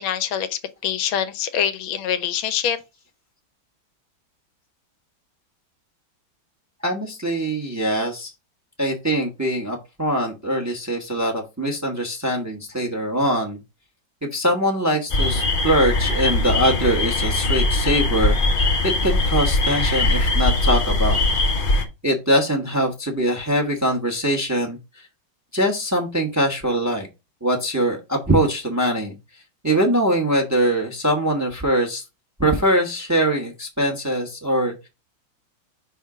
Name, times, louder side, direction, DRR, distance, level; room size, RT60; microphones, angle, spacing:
voice 1, 0.0-2.8, left 9 dB, 80° left, 1.5 m, -25 dB
voice 2, 6.8-8.3 8.8-13.6 14.3-21.2 22.0-24.8 25.5-27.1 27.4-29.1 29.6-32.0 32.4-34.9, right 1 dB, 10° right, 0.9 m, -22 dB
sound 1, 15.1-21.8, left 2 dB, 40° left, 0.8 m, -21 dB
5.6 x 3.5 x 4.8 m
omnidirectional pair, 2.2 m